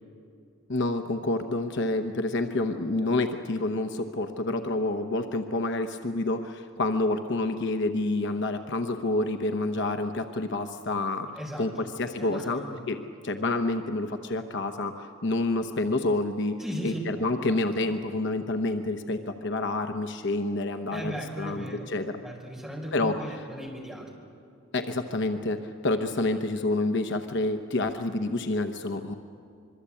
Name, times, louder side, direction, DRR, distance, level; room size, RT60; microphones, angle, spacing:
voice 1, 0.7-11.3 11.6-13.0 13.2-21.7 21.9-22.2 22.9-23.1 24.7-29.1, left 2 dB, 55° left, 7 dB, 0.9 m, -28 dB
voice 2, 11.4-11.9 12.2-12.8 16.6-17.0 17.5-17.6 20.9-21.9 22.2-24.1, equal, ahead, -1 dB, 4.4 m, -37 dB
25.0 x 23.0 x 8.5 m, 2.5 s
head